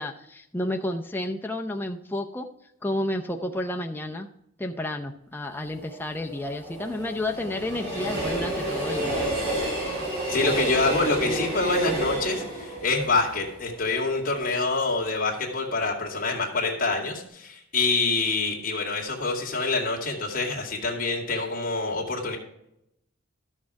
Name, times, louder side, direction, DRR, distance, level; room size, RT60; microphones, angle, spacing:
voice 1, 0.0-2.5 2.8-4.3 4.6-9.3 11.2-11.4, left 1 dB, 10° left, 2 dB, 0.5 m, -31 dB
Train, 5.6-14.6 15.0-15.1, right 1 dB, 50° right, 4.5 m, -31 dB
voice 2, 10.3-22.4, left 3 dB, 40° left, -1 dB, 2.0 m, -26 dB
12.5 x 6.5 x 4.7 m, 0.80 s
head